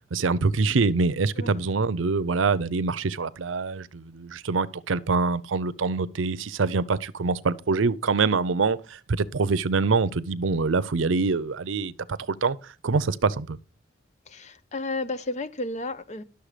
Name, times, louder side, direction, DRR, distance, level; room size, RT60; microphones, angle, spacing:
voice 1, 0.1-13.6, right 4 dB, 85° right, 0.6 m, -25 dB
voice 2, 14.3-16.2, left 2 dB, 35° left, 0.7 m, -32 dB
11.5 x 6.9 x 5.0 m
head